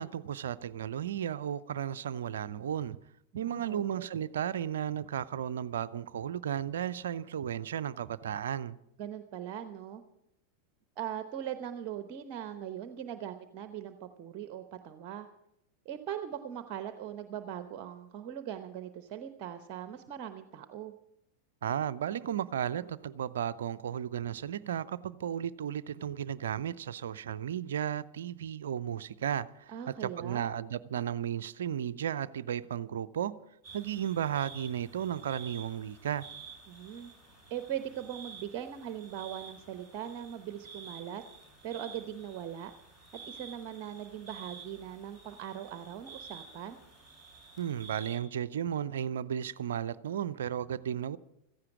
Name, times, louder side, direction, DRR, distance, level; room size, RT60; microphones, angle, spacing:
voice 1, 0.0-3.0 3.3-8.8 21.6-33.3 33.7-36.3 47.6-51.2, right 9 dB, 60° right, 0.5 m, -34 dB
voice 2, 3.4-4.1 9.0-10.0 11.0-15.3 15.8-20.9 29.7-30.5 36.7-37.1 37.5-46.8, right 10 dB, 40° right, 0.9 m, -40 dB
sound 1, 33.6-48.2, right 5 dB, 20° left, 5.3 m, -51 dB
15.5 x 14.5 x 4.9 m
figure-of-eight pair, 90°, 0 cm